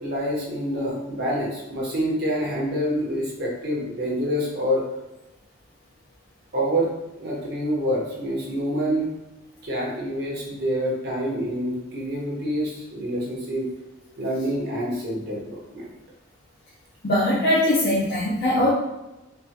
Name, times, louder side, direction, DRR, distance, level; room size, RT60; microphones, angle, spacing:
voice 1, 0.0-4.8 6.5-6.9 7.2-9.1 9.6-13.7 14.2-15.9, equal, 55° right, -3 dB, 1.1 m, -27 dB
voice 2, 17.0-18.7, left 1 dB, 55° left, -10 dB, 1.0 m, -21 dB
4.4 x 2.7 x 2.8 m, 1.0 s
head